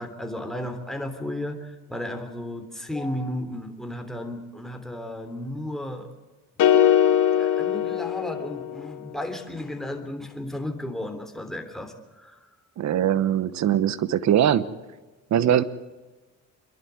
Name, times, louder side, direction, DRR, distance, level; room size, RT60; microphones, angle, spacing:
voice 1, 0.0-6.1 7.4-12.5, left 1 dB, ahead, 4 dB, 3.2 m, -34 dB
sound 1, 6.6-8.9, left 10 dB, 85° left, 2.0 m, -21 dB
voice 2, 12.8-14.7 15.3-15.6, right 10 dB, 65° right, 15 dB, 1.1 m, -21 dB
26.5 x 11.5 x 9.5 m, 1.2 s
cardioid pair, 90°, 30 cm